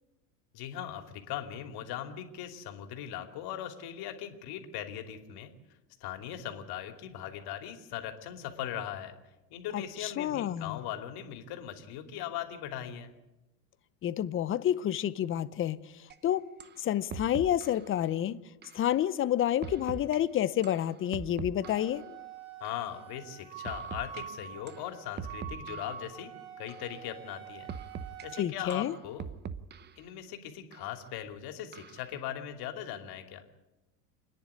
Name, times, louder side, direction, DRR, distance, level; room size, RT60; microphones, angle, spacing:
voice 1, 0.5-5.5 6.0-9.2 9.5-13.1 22.6-26.3 26.6-27.7 28.2-29.3 30.0-33.4, left 10 dB, 50° left, 2.8 m, -39 dB
voice 2, 9.7-10.8 14.0-16.4 16.8-18.4 18.7-22.2 28.4-29.0, left 11 dB, 25° left, 0.7 m, -29 dB
sound 1, 16.1-16.2 16.6-16.8 17.1-17.9 18.6-18.8 19.6-20.2 20.6-22.0 22.6-22.8 23.6-24.2 24.7-24.9 25.2-26.0 26.7-26.9 27.7-28.2 28.7-30.0 30.7-30.9 31.7-32.1, right 6 dB, 20° right, 0.8 m, -42 dB
Wind instrument woodwind instrument, 21.6-28.5, right 9 dB, 75° right, 4.0 m, -46 dB
28.0 x 10.5 x 9.8 m
supercardioid pair, 125°, 48 cm